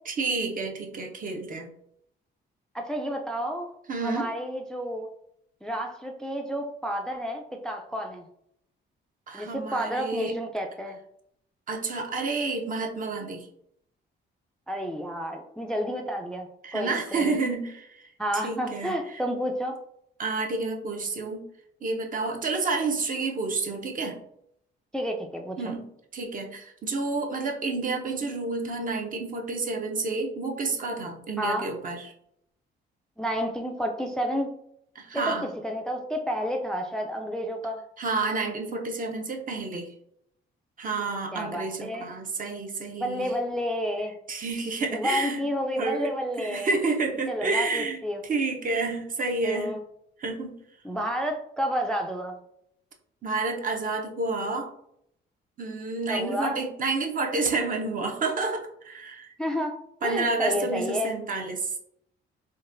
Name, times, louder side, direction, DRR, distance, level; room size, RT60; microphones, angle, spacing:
voice 1, 0.1-1.7 3.9-4.3 9.3-10.4 11.7-13.5 16.6-19.2 20.2-21.4 21.8-24.2 25.6-25.8 26.1-32.1 34.9-35.5 38.0-39.9 40.8-43.3 44.3-45.4 45.8-48.0 48.2-49.7 50.2-50.6 53.2-54.7 55.6-59.3 60.0-61.8, right 3 dB, 45° right, 3 dB, 0.7 m, -30 dB
voice 2, 2.7-3.7 4.0-5.1 5.6-8.2 9.3-11.0 14.7-16.5 16.7-17.4 18.2-19.8 24.9-25.6 31.4-31.7 33.2-34.5 35.1-37.8 41.3-42.1 43.0-44.1 44.9-46.7 47.3-48.2 49.4-49.8 50.8-52.4 56.1-56.6 59.4-59.7 60.0-61.1, equal, 5° left, 3 dB, 0.3 m, -30 dB
3.8 x 2.2 x 2.5 m, 0.72 s
cardioid pair, 90°, 20 cm